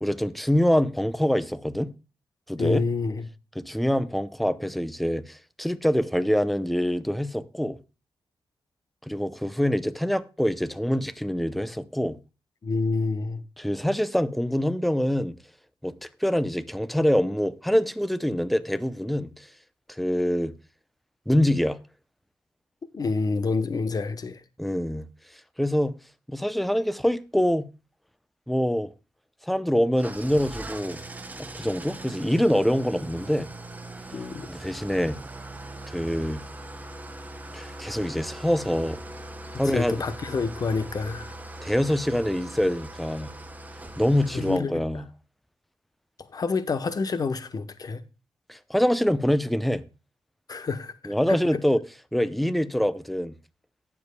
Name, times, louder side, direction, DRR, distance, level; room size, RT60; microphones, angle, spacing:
voice 1, 0.0-1.9 2.5-2.8 3.6-7.8 9.1-12.2 13.6-15.3 15.8-19.5 20.0-20.5 21.3-21.8 24.6-25.0 25.6-25.9 26.3-27.7 28.5-28.9 29.4-31.0 31.5-33.5 34.5-35.2 35.9-36.4 37.5-39.0 39.6-39.9 41.6-43.3 44.0-45.0 48.5-49.8 51.1-51.8 52.1-53.3, equal, ahead, 0.6 m, -25 dB
voice 2, 2.6-3.3 12.6-13.4 22.9-24.4 34.1-34.5 39.6-41.3 44.3-44.8 46.3-48.0 50.5-51.6, left 4 dB, 45° left, 0.9 m, -28 dB
Engine starting / Idling, 30.0-44.6, right 1 dB, 15° right, 1.0 m, -40 dB
18.0 x 7.0 x 2.2 m
cardioid pair, 95°, 9 cm